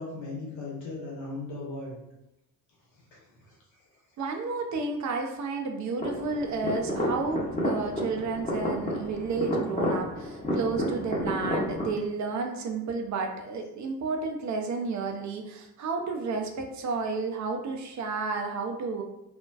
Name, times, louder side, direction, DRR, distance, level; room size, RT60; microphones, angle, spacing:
voice 1, 0.0-2.0 2.9-3.6, left 2 dB, 65° left, -5 dB, 1.1 m, -38 dB
voice 2, 4.2-19.0, right 4 dB, 40° right, 3 dB, 0.4 m, -31 dB
sound 1, 6.0-11.9, equal, 15° left, 0.8 m, -30 dB
2.4 x 2.1 x 2.3 m, 0.88 s
figure-of-eight pair, 40°, 49 cm